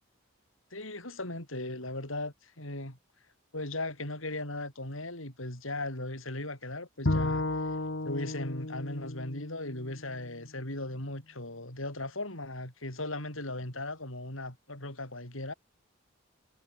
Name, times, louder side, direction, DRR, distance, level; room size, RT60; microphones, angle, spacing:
voice 1, 0.7-3.0 3.5-7.5 8.0-15.5, left 2 dB, 75° left, 7.8 m, -37 dB
Bowed string instrument, 7.1-10.3, left 2 dB, 60° left, 1.5 m, -33 dB
head